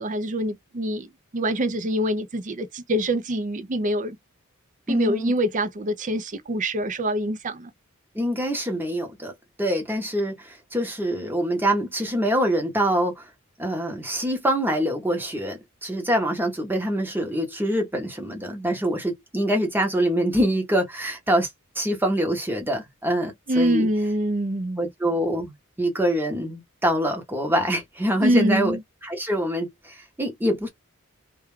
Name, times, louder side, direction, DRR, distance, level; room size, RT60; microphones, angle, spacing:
voice 1, 0.0-4.2 4.9-7.7 23.5-24.9 28.2-28.8, right 1 dB, 35° right, 0.5 m, -25 dB
voice 2, 4.9-5.3 8.1-9.3 9.6-13.3 13.6-21.5 21.8-23.9 24.8-28.8 29.0-30.7, equal, 10° right, 0.8 m, -25 dB
2.3 x 2.3 x 3.1 m
head